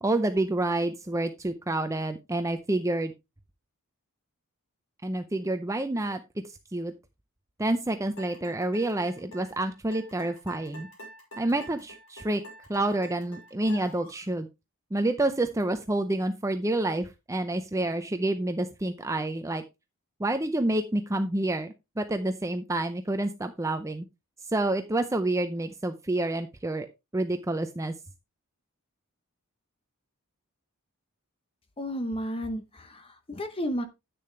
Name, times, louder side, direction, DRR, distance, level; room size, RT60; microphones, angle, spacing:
voice 1, 0.0-3.1 5.0-6.2 6.7-6.9 7.6-10.9 11.4-12.4 12.7-14.5 14.9-19.6 20.2-24.0 24.5-26.9 27.1-27.9, right 2 dB, 15° right, 0.6 m, -28 dB
sound 1, 8.2-14.2, equal, 65° left, 5.7 m, -47 dB
voice 2, 31.8-33.9, equal, 25° left, 0.9 m, -32 dB
10.0 x 8.6 x 3.2 m
head